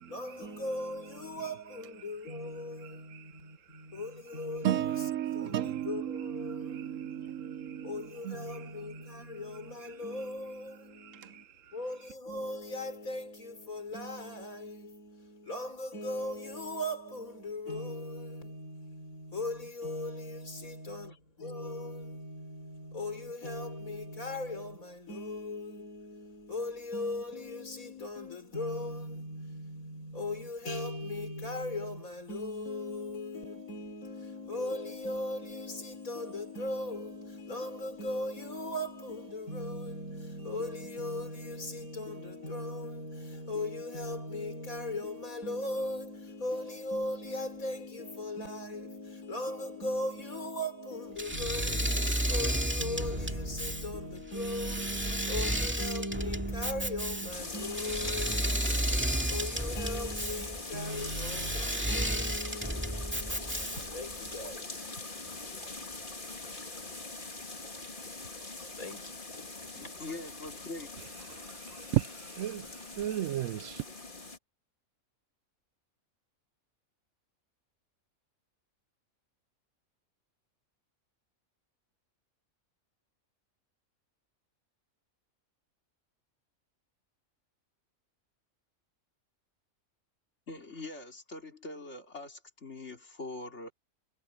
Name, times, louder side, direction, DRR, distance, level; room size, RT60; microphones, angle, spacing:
voice 1, 0.0-11.4 11.7-66.4 68.8-69.5, left 1 dB, 75° left, 4.8 m, -38 dB
voice 2, 4.6-7.9 8.2-8.4 11.1-11.4 71.7-72.1 72.4-72.7 73.0-73.8, right 12 dB, 70° right, 0.9 m, -33 dB
Engine / Mechanisms, 51.2-64.1, right 1 dB, 10° right, 2.1 m, -33 dB
sound 1, 57.3-74.4, left 2 dB, 35° left, 2.6 m, -42 dB
voice 3, 69.8-70.9 90.5-93.7, left 2 dB, 50° left, 3.8 m, -43 dB
omnidirectional pair, 1.5 m